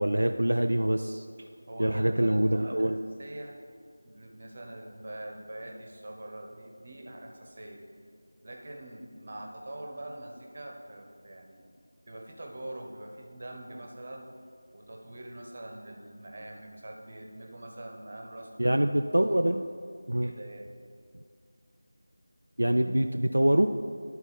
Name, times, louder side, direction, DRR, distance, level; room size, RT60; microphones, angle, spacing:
voice 1, 0.0-1.3 1.8-2.9 18.6-19.6 20.1-20.3 22.6-23.7, right 1 dB, 80° right, 6 dB, 0.3 m, -25 dB
voice 2, 1.4-3.6 4.0-7.8 8.4-11.7 12.1-14.3 14.7-18.9 19.3-19.6 20.2-20.7, right 1 dB, 45° right, 2 dB, 1.1 m, -44 dB
12.0 x 4.3 x 4.2 m, 2.2 s
figure-of-eight pair, 170°, 0 cm